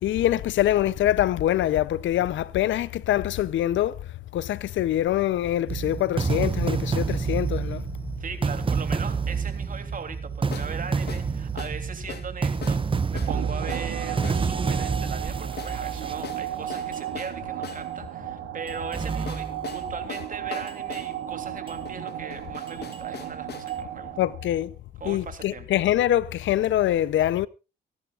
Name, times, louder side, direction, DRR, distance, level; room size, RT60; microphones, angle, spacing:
voice 1, 0.0-4.0 4.3-7.9 24.2-24.7 25.0-27.5, left 12 dB, 75° left, 0.7 m, -24 dB
sound 1, 5.7-17.0 17.7-17.8 18.7-19.9 20.7-21.0 21.7-21.8 22.7-23.0 23.7-23.8, right 5 dB, 25° right, 1.1 m, -28 dB
sound 2, 6.6-6.7 10.5-10.7 11.1-11.3 11.6-11.8 12.1-12.3 12.6-12.8 13.2-13.4 13.7-13.9 14.2-14.5 15.6-15.8 16.2-17.9 19.3-21.1 21.9-23.7, left 8 dB, 55° left, 1.2 m, -40 dB
voice 2, 8.2-24.2 25.0-25.7, right 5 dB, 45° right, 3.1 m, -39 dB
sound 3, 13.3-24.6, right 11 dB, 85° right, 1.9 m, -35 dB
25.0 x 11.5 x 2.5 m
cardioid pair, 90°, 20 cm